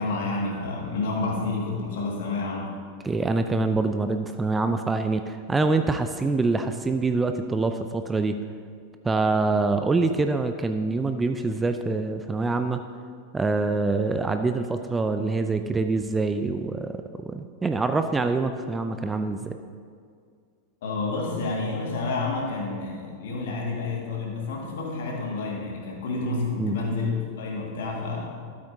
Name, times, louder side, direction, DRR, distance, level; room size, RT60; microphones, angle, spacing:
voice 1, 0.0-2.7 20.8-28.4, left 3 dB, 55° left, -1 dB, 1.9 m, -29 dB
voice 2, 3.0-8.4 9.0-12.8 13.3-19.6 26.6-26.8, right 3 dB, 10° right, 8 dB, 0.4 m, -25 dB
12.5 x 8.4 x 2.7 m, 2.2 s
figure-of-eight pair, 90°, 0 cm